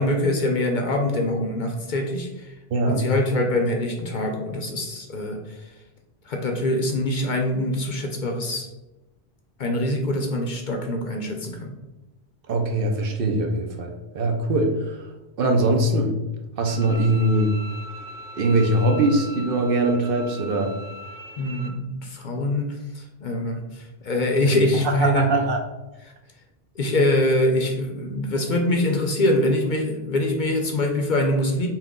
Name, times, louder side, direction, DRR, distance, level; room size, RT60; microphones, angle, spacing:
voice 1, 0.0-2.5 2.9-5.7 6.3-8.7 9.6-11.7 21.4-25.3 26.8-31.7, left 1 dB, 55° left, 3 dB, 0.7 m, -24 dB
voice 2, 2.7-3.1 12.5-15.0 15.4-16.1 16.6-17.6 18.3-20.7 24.4-24.5 24.8-25.6, right 2 dB, 65° right, 3 dB, 0.8 m, -22 dB
Bowed string instrument, 16.7-21.7, left 1 dB, 85° right, 1.0 m, -39 dB
5.7 x 2.2 x 3.6 m, 1.0 s
omnidirectional pair, 1.1 m